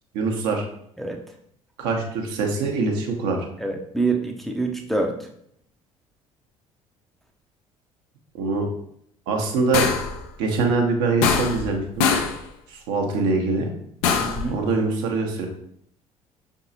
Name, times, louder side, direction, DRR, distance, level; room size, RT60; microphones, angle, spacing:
voice 1, 0.1-0.6 1.8-3.4 8.3-8.7 9.3-9.8 10.4-12.1 12.7-13.7 14.5-15.5, right 4 dB, 65° right, 2 dB, 0.9 m, -23 dB
voice 2, 3.6-5.3 14.2-14.6, right 3 dB, ahead, 1 dB, 0.6 m, -26 dB
sound 1, 9.7-10.2 11.2-11.7 12.0-12.4 14.0-14.5, left 6 dB, 65° left, 0.6 m, -22 dB
5.5 x 3.5 x 2.7 m, 0.69 s
figure-of-eight pair, 55°, 18 cm